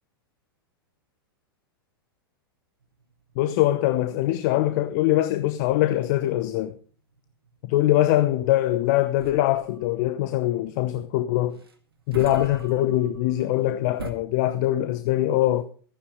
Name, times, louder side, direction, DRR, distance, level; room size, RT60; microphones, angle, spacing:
sound 1, 2.8-14.1, right 4 dB, 80° right, 2.1 m, -45 dB
voice 1, 3.4-6.7 7.6-11.6 12.1-15.6, left 14 dB, 50° left, 0.9 m, -23 dB
14.0 x 9.9 x 5.0 m
figure-of-eight pair, 100°, 12 cm